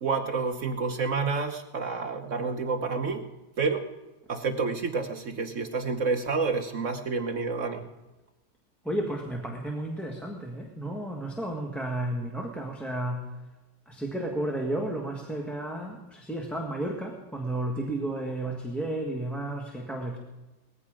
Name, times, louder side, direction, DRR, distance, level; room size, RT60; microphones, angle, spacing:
voice 1, 0.0-3.3 3.6-3.8 4.3-7.9, right 4 dB, 50° right, 6 dB, 1.1 m, -29 dB
voice 2, 8.8-13.3 13.9-20.2, right 1 dB, ahead, 0 dB, 1.4 m, -32 dB
18.5 x 15.0 x 5.1 m, 1.1 s
omnidirectional pair, 2.0 m